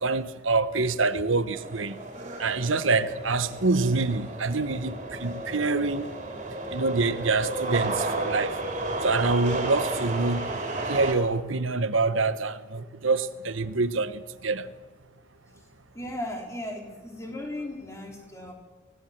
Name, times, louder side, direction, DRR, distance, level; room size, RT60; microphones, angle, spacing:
voice 1, 0.0-2.0 2.4-6.1 6.7-8.5 9.0-10.6 10.9-14.7, right 3 dB, 75° right, 1.1 m, -26 dB
sound 1, 1.5-11.1, right 2 dB, 35° right, 4.4 m, -33 dB
voice 2, 15.9-18.5, left 1 dB, 15° left, 4.2 m, -36 dB
25.5 x 18.5 x 7.4 m
head